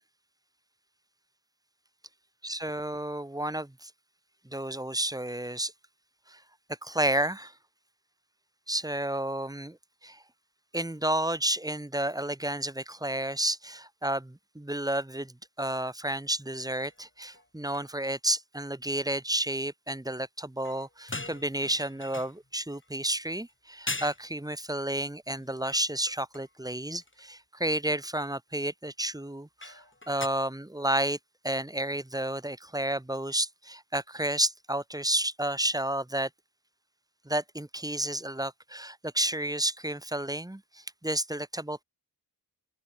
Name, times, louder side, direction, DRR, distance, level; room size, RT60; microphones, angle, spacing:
voice 1, 2.4-3.9 4.4-5.7 6.3-6.4 6.8-7.5 8.7-9.8 10.0-10.2 10.7-31.2 31.4-36.3 37.2-41.8, right 1 dB, 10° right, 0.8 m, -31 dB
sound 1, 16.8-17.0 17.3-17.5 17.7-18.1 20.6-22.9 23.5-23.6 23.9-24.3 25.3-26.5 27.0-27.2 29.6-30.3, left 2 dB, 30° left, 1.9 m, -41 dB
open air
wide cardioid pair, 40°, 40 cm